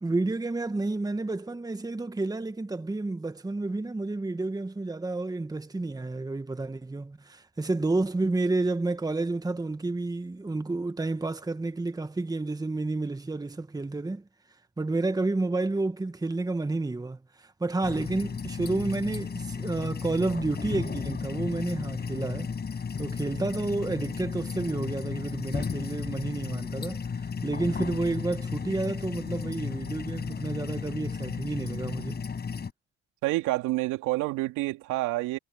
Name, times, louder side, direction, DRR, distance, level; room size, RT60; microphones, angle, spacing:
voice 1, 0.0-14.3 14.8-22.5 23.0-32.2, right 2 dB, 10° right, 1.7 m, -30 dB
sound 1, 17.8-32.7, left 5 dB, 30° left, 6.9 m, -34 dB
voice 2, 33.2-35.4, right 19 dB, 70° right, 3.3 m, -28 dB
supercardioid pair, 75°, 31 cm